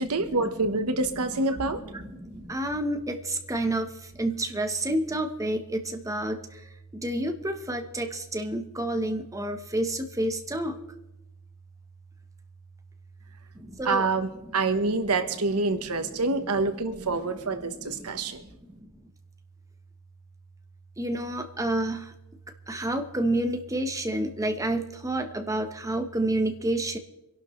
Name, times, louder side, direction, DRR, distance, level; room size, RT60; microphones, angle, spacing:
voice 1, 0.0-1.8 13.8-18.4, right 3 dB, 90° right, 9 dB, 1.2 m, -27 dB
voice 2, 1.9-10.8 13.5-14.1 17.6-18.4 18.7-18.9 21.0-22.1 22.7-27.0, right 1 dB, 15° right, 6 dB, 1.1 m, -29 dB
25.0 x 11.5 x 3.2 m, 0.91 s
head